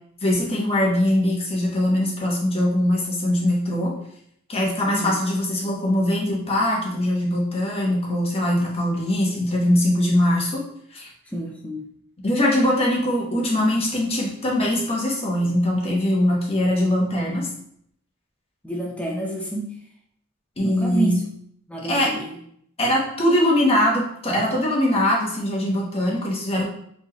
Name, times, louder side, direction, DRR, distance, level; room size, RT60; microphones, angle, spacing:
voice 1, 0.2-3.9 4.5-10.6 10.9-11.1 12.2-17.5 20.6-21.2 21.9-22.1 22.8-26.6, left 1 dB, 30° left, -3 dB, 1.1 m, -22 dB
voice 2, 11.3-11.8 18.6-19.8 20.6-21.2 21.7-22.3, right 2 dB, 5° left, -1 dB, 0.5 m, -28 dB
4.4 x 3.3 x 2.9 m, 0.69 s
head